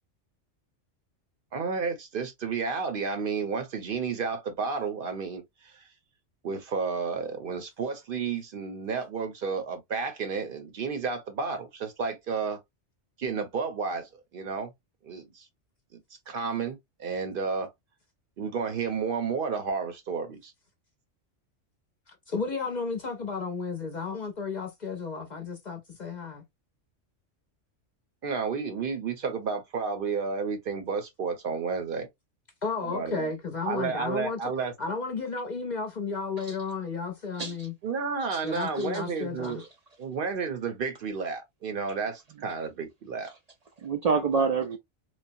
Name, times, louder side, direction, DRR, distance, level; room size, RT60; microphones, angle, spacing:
voice 1, 1.5-5.9 6.4-12.6 13.2-14.7 15.0-15.5 15.9-16.0 16.3-17.7 18.4-20.5 28.2-32.1 32.8-33.3 33.7-34.7 37.8-39.7 40.0-43.3, right 5 dB, 55° right, 0.7 m, -31 dB
voice 2, 22.3-26.4 32.6-34.5 34.8-37.7 38.4-39.6, left 4 dB, 50° left, 0.6 m, -33 dB
voice 3, 38.3-38.9 43.8-44.8, right 5 dB, 90° right, 0.3 m, -28 dB
3.2 x 2.0 x 2.5 m
omnidirectional pair, 1.2 m